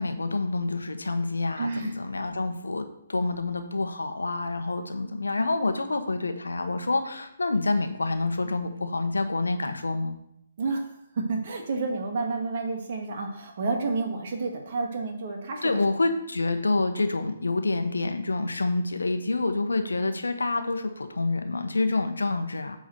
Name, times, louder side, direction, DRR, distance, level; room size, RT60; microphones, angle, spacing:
voice 1, 0.0-10.2 15.6-22.8, left 3 dB, 75° left, 7 dB, 1.0 m, -27 dB
voice 2, 1.6-1.9 10.6-10.8 11.1-15.7, right 3 dB, 50° right, 2 dB, 1.9 m, -30 dB
8.6 x 3.9 x 6.6 m, 0.78 s
figure-of-eight pair, 130°, 0 cm